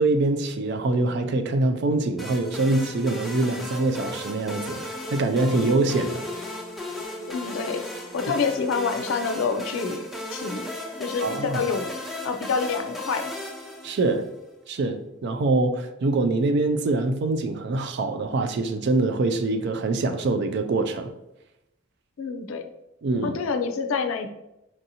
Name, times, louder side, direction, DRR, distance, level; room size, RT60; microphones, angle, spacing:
voice 1, 0.0-4.8 5.1-6.2 11.2-11.6 13.8-14.2 14.7-21.1 23.0-23.4, right 2 dB, 55° right, 0.4 m, -24 dB
sound 1, 2.2-14.4, left 1 dB, ahead, 0.5 m, -36 dB
voice 2, 7.3-7.8 8.1-10.0 10.3-10.6 11.0-11.9 12.2-13.3 22.2-22.6 23.2-24.3, left 5 dB, 75° left, 0.4 m, -27 dB
4.6 x 2.6 x 2.7 m
head